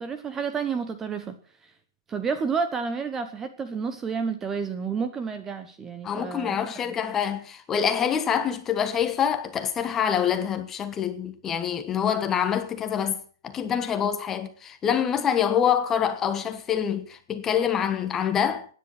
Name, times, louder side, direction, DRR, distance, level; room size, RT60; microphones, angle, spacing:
voice 1, 0.0-1.7 2.1-6.6 6.8-6.9, right 5 dB, 10° right, 0.9 m, -30 dB
voice 2, 6.0-18.7, left 8 dB, 15° left, 1.3 m, -26 dB
16.0 x 10.0 x 6.0 m
hypercardioid pair, 165°, 2 cm